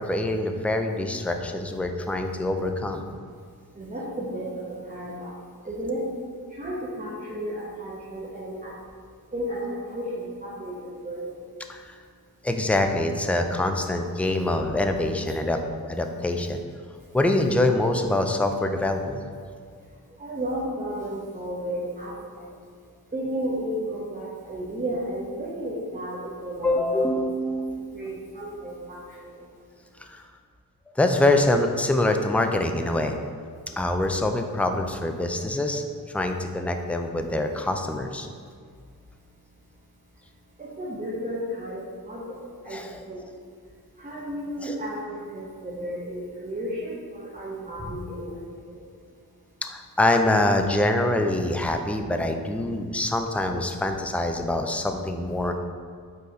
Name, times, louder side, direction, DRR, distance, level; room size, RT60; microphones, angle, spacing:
voice 1, 0.0-3.0 11.7-11.8 12.4-16.6 17.1-19.2 26.6-28.1 30.1-30.2 31.0-33.2 33.8-35.8 36.1-38.3 42.7-43.0 44.6-44.7 49.6-55.5, left 1 dB, 5° left, 5 dB, 0.4 m, -25 dB
voice 2, 3.7-5.3 5.6-6.0 6.5-8.7 9.3-11.3 20.2-22.5 23.1-27.1 27.9-29.4 40.6-42.8 43.1-43.3 44.0-48.3 48.7-48.8 51.6-51.7, right 1 dB, 25° right, -10 dB, 1.3 m, -33 dB
5.4 x 4.0 x 5.0 m, 2.1 s
wide cardioid pair, 100°, 37 cm